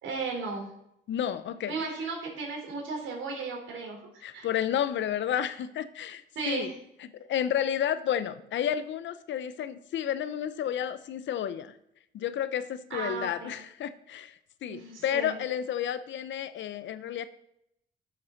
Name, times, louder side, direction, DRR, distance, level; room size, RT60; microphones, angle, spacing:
voice 1, 0.0-0.7 1.7-4.0 4.3-4.5 6.4-6.7 12.9-13.5 14.7-15.4, right 4 dB, 75° right, 0 dB, 3.9 m, -35 dB
voice 2, 1.1-1.8 4.2-6.7 7.3-11.7 12.1-17.3, left 9 dB, 70° left, 13 dB, 0.8 m, -31 dB
10.0 x 6.8 x 5.8 m, 0.77 s
cardioid pair, 90°, 20 cm